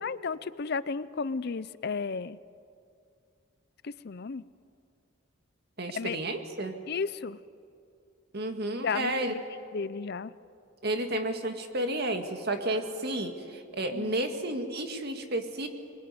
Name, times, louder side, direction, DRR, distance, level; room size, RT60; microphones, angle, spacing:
voice 1, 0.0-2.4 3.8-4.4 5.9-6.2 6.9-7.4 8.8-9.4 9.7-10.3 13.9-14.1, left 5 dB, 50° left, 16 dB, 0.5 m, -33 dB
voice 2, 5.8-6.8 8.3-9.3 10.8-15.7, right 1 dB, 50° right, 5 dB, 2.1 m, -31 dB
25.0 x 21.5 x 9.6 m, 2.4 s
head